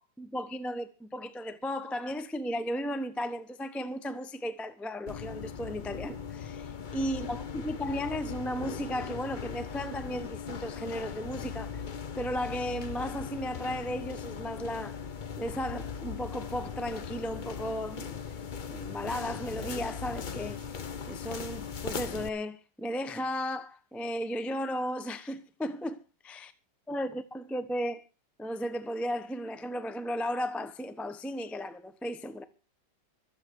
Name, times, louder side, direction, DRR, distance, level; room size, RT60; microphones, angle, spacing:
voice 1, 0.0-11.8 12.2-15.0 15.4-18.2 18.7-20.6 21.1-26.5 26.9-28.1 28.4-32.4, equal, ahead, 0.5 m, -35 dB
sound 1, 5.1-22.3, left 6 dB, 45° left, 0.6 m, -39 dB
24.5 x 8.3 x 4.7 m
omnidirectional pair, 2.0 m